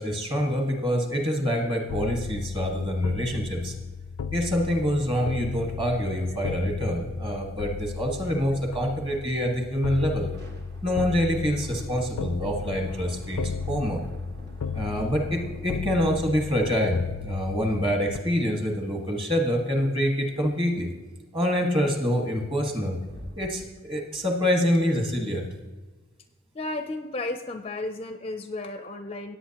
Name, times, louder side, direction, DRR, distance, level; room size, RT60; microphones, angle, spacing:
voice 1, 0.0-3.7 4.3-10.3 10.8-14.0 14.7-20.9 21.3-23.0 23.4-25.4, equal, 25° right, 2 dB, 1.6 m, -26 dB
sound 1, 1.9-18.2, left 5 dB, 90° left, 0.4 m, -35 dB
sound 2, 9.9-17.9 22.1-22.2 22.4-23.5, equal, 50° right, 1.5 m, -47 dB
voice 2, 26.5-29.4, left 2 dB, 25° left, 8 dB, 0.5 m, -33 dB
17.5 x 8.5 x 2.9 m, 1.3 s
head